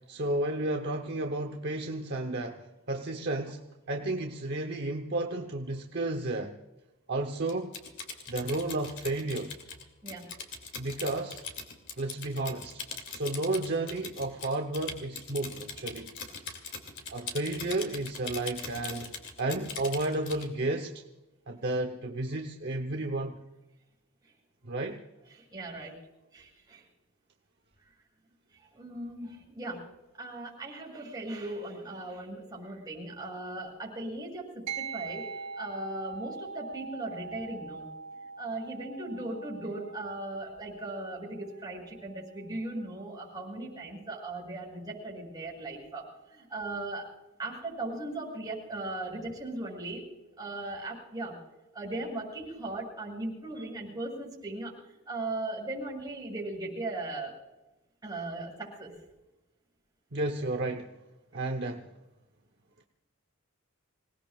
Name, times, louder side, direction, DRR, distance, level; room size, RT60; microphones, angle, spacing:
voice 1, 0.1-3.6 3.9-6.6 7.1-7.7 8.3-9.5 10.8-11.4 12.0-12.8 13.1-16.1 17.1-19.1 19.4-21.0 21.5-23.4 24.6-25.0 60.1-60.9 61.3-61.9, right 2 dB, 50° right, 3 dB, 1.0 m, -32 dB
Typing, 7.5-20.5, left 5 dB, 55° left, 2.7 m, -41 dB
voice 2, 10.0-10.3 24.2-24.3 25.3-26.0 26.3-26.8 28.5-29.9 30.2-35.3 35.6-37.9 38.4-47.1 47.4-50.1 50.4-51.4 51.7-57.3 58.0-59.0, right 2 dB, 20° right, -3 dB, 7.3 m, -38 dB
sound 1, 34.7-44.4, right 5 dB, 85° right, 2.9 m, -43 dB
27.0 x 18.5 x 2.5 m, 1.0 s
head